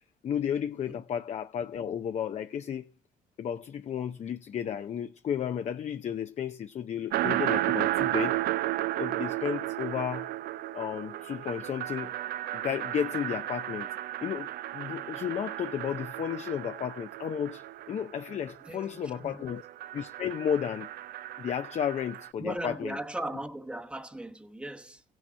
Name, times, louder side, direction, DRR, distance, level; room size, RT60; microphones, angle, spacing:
voice 1, 0.2-2.9 3.4-8.4 9.0-10.3 10.7-12.1 12.5-13.9 14.2-19.6 19.9-20.9 21.4-23.0, left 8 dB, 40° left, 0.6 m, -33 dB
sound 1, 7.1-18.8 19.1-22.3, right 14 dB, 65° right, 0.4 m, -33 dB
voice 2, 18.6-19.6 22.4-25.0, right 1 dB, 5° right, 1.0 m, -38 dB
16.5 x 6.3 x 4.4 m
cardioid pair, 110°, 17 cm